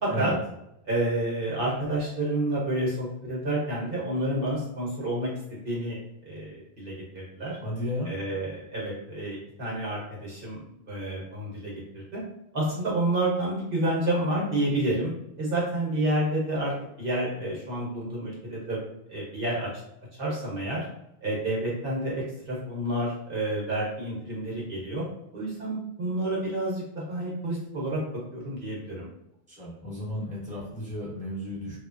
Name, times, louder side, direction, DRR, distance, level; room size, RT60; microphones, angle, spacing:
voice 1, 0.0-0.3 0.8-5.3 5.6-6.0 6.3-7.6 8.0-10.6 10.9-12.2 12.5-15.1 15.4-16.7 17.0-18.8 19.1-19.7 20.2-20.8 21.2-25.0 25.3-28.0 28.3-29.1, right 1 dB, 60° right, -5 dB, 1.0 m, -29 dB
voice 2, 7.6-8.1 29.5-31.8, left 1 dB, 10° right, -7 dB, 0.9 m, -33 dB
3.2 x 2.2 x 2.5 m, 0.82 s
omnidirectional pair, 1.1 m